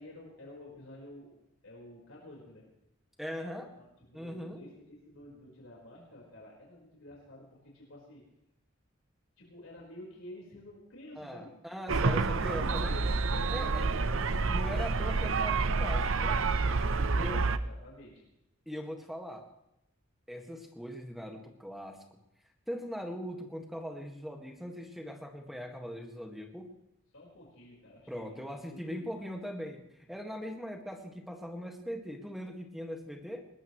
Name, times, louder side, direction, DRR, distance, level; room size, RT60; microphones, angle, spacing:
voice 1, 0.0-1.4 1.6-2.7 3.8-8.2 9.4-11.5 12.2-14.5 16.9-18.2 27.1-29.2, left 1 dB, 85° left, -4 dB, 4.7 m, -49 dB
voice 2, 3.2-3.8 4.1-4.6 11.2-13.0 13.5-13.8 14.1-16.4 17.2-17.4 18.7-19.5 20.3-22.2 22.7-26.7 28.1-33.5, equal, ahead, 3 dB, 1.8 m, -40 dB
sound 1, 11.9-17.6, right 4 dB, 75° right, 0.8 m, -28 dB
21.5 x 19.0 x 3.2 m, 0.88 s
head